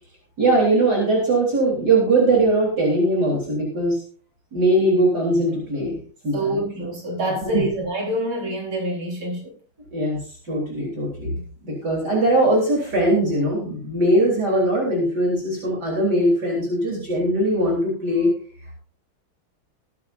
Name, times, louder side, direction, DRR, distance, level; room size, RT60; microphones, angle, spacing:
voice 1, 0.4-4.0 4.5-6.0 6.2-6.6 7.4-7.6 9.9-10.2 10.4-18.3, right 1 dB, 50° right, 4.4 m, -20 dB
voice 2, 6.3-9.5, right 1 dB, 75° right, 5.3 m, -26 dB
21.5 x 9.6 x 2.6 m
omnidirectional pair, 2.3 m